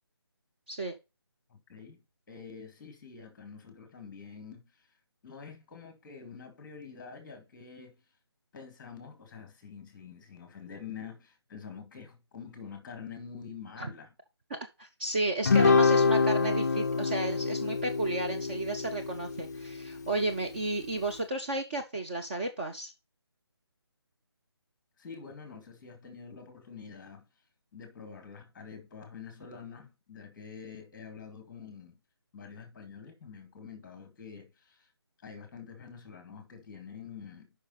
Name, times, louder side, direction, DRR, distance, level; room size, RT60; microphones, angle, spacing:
voice 1, 1.5-4.9 5.2-8.0 8.5-14.1 25.0-27.3 27.7-32.0 32.3-34.9 35.2-37.5, left 6 dB, 15° left, 2.1 m, -47 dB
voice 2, 14.5-22.9, right 2 dB, 20° right, 0.7 m, -33 dB
Guitar, 15.4-20.1, left 4 dB, 40° left, 0.4 m, -26 dB
8.4 x 5.8 x 4.1 m
figure-of-eight pair, 170°, 14 cm